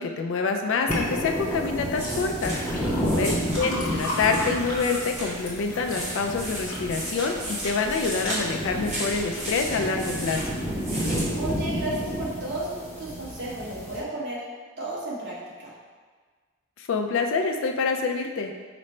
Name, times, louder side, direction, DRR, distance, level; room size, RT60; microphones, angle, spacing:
voice 1, 0.0-2.5 3.0-7.3 7.6-10.4 16.8-18.5, left 4 dB, 60° left, 4 dB, 0.3 m, -26 dB
sound 1, 0.9-1.1 2.0-8.1 8.5-9.1 9.6-9.7, left 2 dB, 85° left, 1.1 m, -37 dB
sound 2, 0.9-14.0, equal, 10° left, 0.6 m, -31 dB
sound 3, 1.1-12.1, right 1 dB, 30° right, 1.1 m, -36 dB
voice 2, 3.1-3.4 11.4-14.4 14.8-15.7, right 1 dB, 50° right, -7 dB, 1.1 m, -33 dB
5.0 x 2.1 x 4.2 m, 1.5 s
head